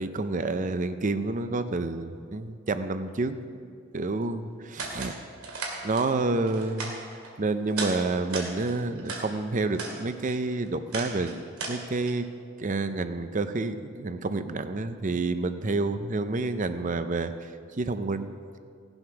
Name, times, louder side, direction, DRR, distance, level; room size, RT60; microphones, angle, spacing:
voice 1, 0.0-3.4 3.9-5.1 5.8-6.9 7.4-12.3 12.6-17.5 17.8-18.3, right 3 dB, 35° right, 11 dB, 0.5 m, -29 dB
sound 1, 4.8-5.1 5.4-6.1 6.5-7.3 7.7-8.0 8.2-9.3 9.6-10.0 10.3-12.1, right 3 dB, 90° right, 2.4 m, -36 dB
17.0 x 7.9 x 6.0 m, 2.3 s
head